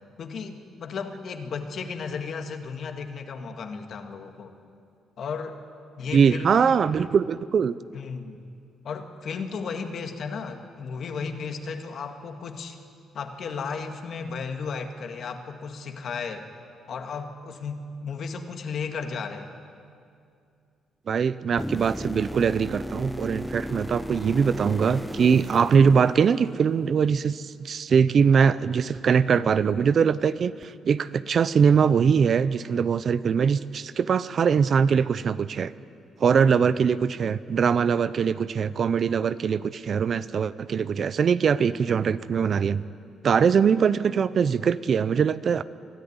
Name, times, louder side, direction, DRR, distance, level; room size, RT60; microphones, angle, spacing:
voice 1, 0.2-4.6 5.2-5.6 6.0-6.6 7.9-8.4 8.8-12.8 13.1-16.5 16.9-19.5, left 5 dB, 60° left, 6 dB, 2.0 m, -34 dB
voice 2, 6.1-7.7 21.1-35.7 36.2-42.8 43.2-45.6, right 6 dB, 50° right, 16 dB, 0.6 m, -22 dB
sound 1, 21.6-26.6 30.6-30.7, equal, ahead, 0.5 m, -35 dB
23.5 x 13.0 x 9.7 m, 2.4 s
cardioid pair, 90°, 0 cm